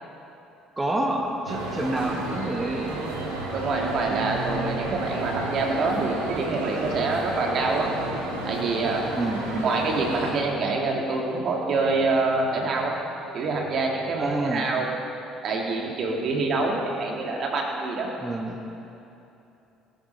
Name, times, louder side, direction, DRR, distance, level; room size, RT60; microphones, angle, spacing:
voice 1, 0.8-3.2 9.1-9.7 14.2-14.7 18.2-18.6, right 2 dB, 15° right, 0 dB, 1.6 m, -28 dB
sound 1, 1.5-10.3, right 2 dB, 80° right, 2.2 m, -31 dB
voice 2, 3.5-7.9 8.4-9.1 9.6-13.0 13.3-15.0 15.4-18.1, right 3 dB, 50° right, 0 dB, 2.1 m, -26 dB
19.0 x 9.8 x 5.3 m, 2.8 s
figure-of-eight pair, 55°, 0 cm